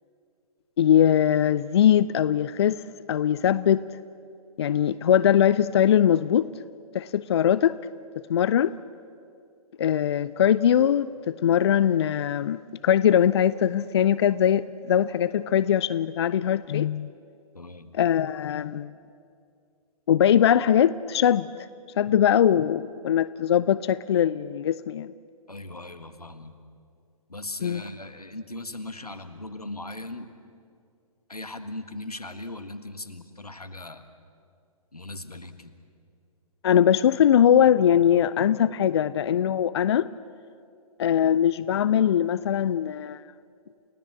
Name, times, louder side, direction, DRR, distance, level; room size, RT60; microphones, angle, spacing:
voice 1, 0.8-2.8 3.1-3.8 4.6-6.5 6.9-7.8 8.3-8.7 9.8-17.1 17.9-18.9 20.1-21.5 22.0-25.1 27.6-27.8 36.6-40.1 41.0-43.2, left 9 dB, 45° left, 17 dB, 0.5 m, -21 dB
voice 2, 17.5-17.9 25.5-26.5 27.3-30.3 31.3-34.0 34.9-35.7, left 2 dB, 90° left, 10 dB, 1.6 m, -38 dB
29.5 x 17.0 x 7.5 m, 2.4 s
figure-of-eight pair, 125°, 19 cm